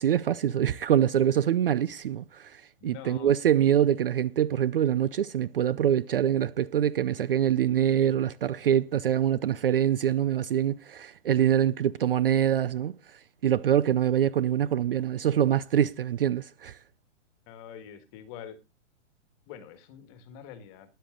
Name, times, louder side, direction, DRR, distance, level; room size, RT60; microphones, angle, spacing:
voice 1, 0.0-16.8, right 10 dB, 45° right, 0.5 m, -25 dB
voice 2, 2.8-3.3 17.5-18.6 19.5-20.9, left 8 dB, 25° left, 1.6 m, -45 dB
13.0 x 10.5 x 3.7 m
hypercardioid pair, 160°, 38 cm